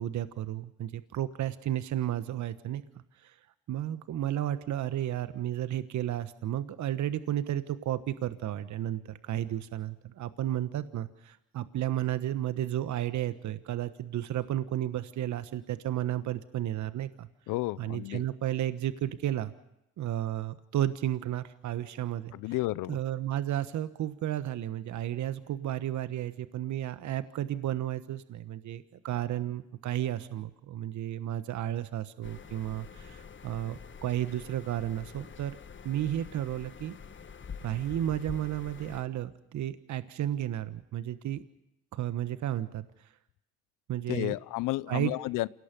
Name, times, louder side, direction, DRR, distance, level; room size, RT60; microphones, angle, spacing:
voice 1, 0.0-2.8 3.2-3.3 3.7-17.3 17.8-19.5 20.0-22.3 22.9-35.6 35.8-36.9 37.6-41.4 41.9-42.8 43.9-44.3 44.9-45.1, right 12 dB, 55° right, 12 dB, 1.3 m, -33 dB
voice 2, 17.5-18.2 22.3-23.0 44.1-45.5, left 19 dB, 65° left, 21 dB, 0.7 m, -32 dB
sound 1, 32.2-39.0, left 6 dB, 35° left, 1.6 m, -46 dB
28.0 x 18.0 x 5.2 m, 0.84 s
hypercardioid pair, 65°, 34 cm